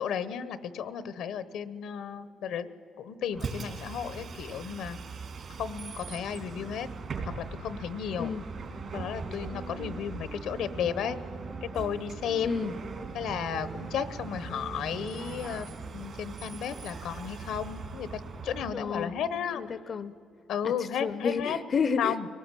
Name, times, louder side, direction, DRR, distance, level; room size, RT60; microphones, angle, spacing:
voice 1, 0.0-2.7 3.0-5.0 5.6-6.9 7.2-8.3 8.9-11.2 11.6-12.6 13.1-19.8 20.5-21.6 22.0-22.3, left 8 dB, 80° left, 15 dB, 0.9 m, -34 dB
Bus, 3.3-18.7, right 4 dB, 55° right, 2.8 m, -40 dB
sound 1, 8.6-15.8, right 4 dB, 30° right, 0.9 m, -45 dB
voice 2, 12.4-12.7 18.7-19.1 19.6-20.2 20.6-22.3, left 5 dB, 45° left, 15 dB, 0.6 m, -31 dB
23.5 x 18.0 x 9.0 m, 2.8 s
cardioid pair, 90°, 0 cm